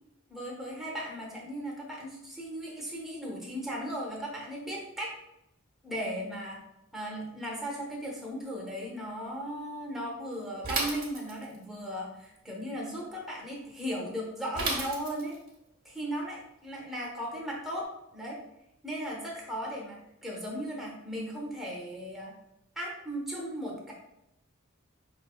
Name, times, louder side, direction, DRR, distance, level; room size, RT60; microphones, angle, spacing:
voice 1, 0.3-5.1 5.8-6.6 6.9-15.4 15.8-18.4 18.8-22.3 22.8-23.9, equal, ahead, -4 dB, 0.9 m, -37 dB
Bicycle / Mechanisms, 10.6-11.6 14.6-15.5, right 3 dB, 40° right, 1.0 m, -33 dB
5.3 x 3.0 x 2.2 m, 0.85 s
head